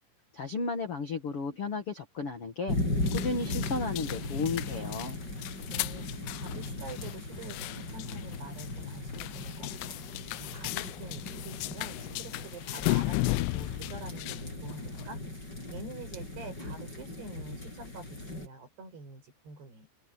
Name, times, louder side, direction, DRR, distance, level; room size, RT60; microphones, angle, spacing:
voice 1, 0.3-2.8 3.1-5.2, left 4 dB, 50° left, 1.7 m, -34 dB
sound 1, 2.7-18.5, left 2 dB, 20° left, 8.6 m, -38 dB
sound 2, 3.0-15.1, left 22 dB, 85° left, 3.1 m, -36 dB
voice 2, 5.7-6.1 6.3-10.0 10.4-19.9, right 3 dB, 60° right, 8.5 m, -47 dB
omnidirectional pair, 5.5 m